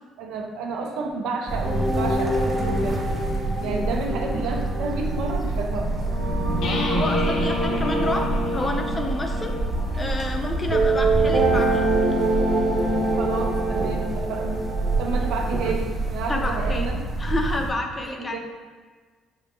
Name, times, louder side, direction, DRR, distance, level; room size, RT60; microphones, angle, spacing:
voice 1, 0.2-3.0 3.6-5.9 13.2-14.6 15.0-17.0 18.1-18.4, right 3 dB, 80° right, 1 dB, 0.6 m, -30 dB
sound 1, 1.5-17.7, right 2 dB, 20° right, 0.7 m, -27 dB
sound 2, 1.6-15.7, right 2 dB, 55° right, 1.0 m, -26 dB
sound 3, 6.6-10.3, left 2 dB, 65° left, 0.6 m, -35 dB
voice 2, 6.9-9.6 9.9-12.0 16.3-16.9 17.2-18.4, left 2 dB, 20° left, 3 dB, 0.5 m, -29 dB
5.4 x 2.6 x 3.5 m, 1.4 s
cardioid pair, 140°, 0 cm